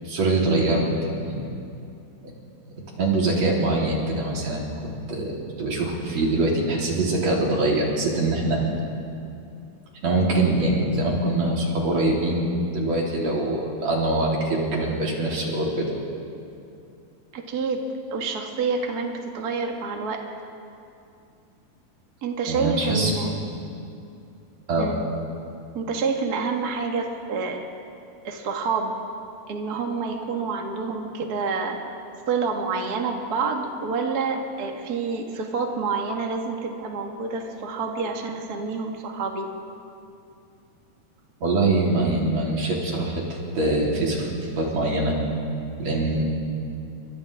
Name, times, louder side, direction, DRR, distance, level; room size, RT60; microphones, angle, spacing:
voice 1, 0.0-0.8 1.2-1.4 2.7-8.6 10.0-15.9 22.5-23.1 24.7-24.9 41.4-43.2 43.5-44.3 44.6-45.2 45.8-46.2, right 2 dB, 45° right, -3 dB, 4.2 m, -23 dB
voice 2, 17.3-17.8 18.1-20.2 22.2-23.3 24.8-25.0 25.7-27.6 28.2-28.9 29.5-31.8 32.3-39.5, right 4 dB, 75° right, 2 dB, 0.8 m, -28 dB
29.5 x 25.0 x 3.5 m, 2.6 s
omnidirectional pair, 4.4 m